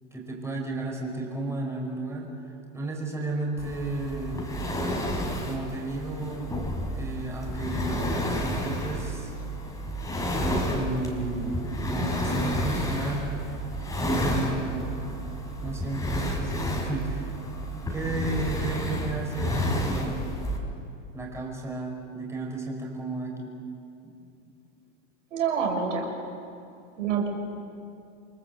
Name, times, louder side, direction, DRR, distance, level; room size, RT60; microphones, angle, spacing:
voice 1, 0.1-2.3 2.7-4.6 5.4-6.5 6.9-9.3 10.6-13.3 14.0-15.1 15.6-17.3 17.9-20.4 21.1-23.5 24.0-24.1, right 2 dB, 5° right, -1 dB, 5.3 m, -33 dB
sound 1, 3.6-20.6, equal, 10° left, 4.1 m, -30 dB
voice 2, 25.3-26.1 27.0-27.3, right 6 dB, 85° right, 2 dB, 6.4 m, -26 dB
28.5 x 23.5 x 8.0 m, 2.6 s
supercardioid pair, 150°, 37 cm